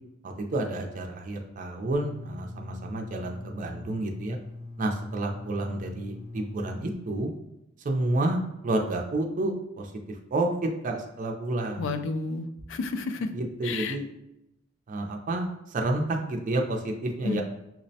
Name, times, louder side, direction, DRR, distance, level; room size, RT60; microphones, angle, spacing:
voice 1, 0.2-4.4 4.8-7.3 7.8-8.4 8.6-10.5 10.8-11.9 13.3-14.1 14.9-17.4, right 2 dB, 40° right, 2 dB, 0.4 m, -30 dB
sound 1, 1.9-6.9, left 2 dB, 30° left, 0.7 m, -42 dB
voice 2, 11.8-13.3 13.6-14.0 17.2-17.4, left 4 dB, 65° left, 8 dB, 0.3 m, -31 dB
5.7 x 2.1 x 2.7 m, 0.85 s
head